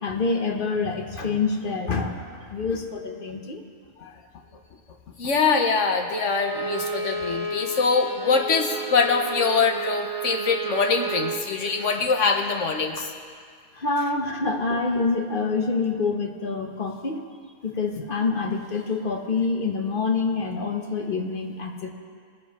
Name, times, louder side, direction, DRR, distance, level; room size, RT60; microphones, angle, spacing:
voice 1, 0.0-3.6 13.7-17.2 17.6-21.9, left 4 dB, 40° left, 3 dB, 1.1 m, -26 dB
voice 2, 5.2-13.1, left 4 dB, 60° left, 3 dB, 1.3 m, -23 dB
Bowed string instrument, 6.4-11.4, right 3 dB, 25° right, 1.6 m, -31 dB
20.0 x 7.5 x 4.8 m, 2.1 s
omnidirectional pair, 1.5 m